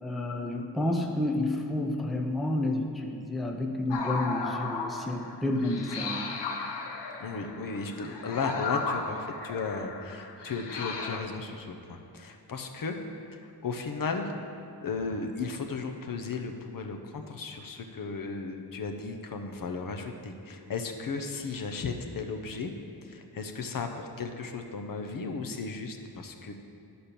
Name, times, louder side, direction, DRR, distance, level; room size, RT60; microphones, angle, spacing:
voice 1, 0.0-6.3, left 1 dB, ahead, 2 dB, 0.5 m, -30 dB
sound 1, 3.9-11.2, left 4 dB, 85° left, 1.0 m, -35 dB
voice 2, 7.2-13.0 13.3-14.3 14.8-22.7 23.0-26.5, left 4 dB, 55° left, 4 dB, 0.7 m, -35 dB
11.5 x 4.3 x 6.8 m, 2.5 s
wide cardioid pair, 170°, 40 cm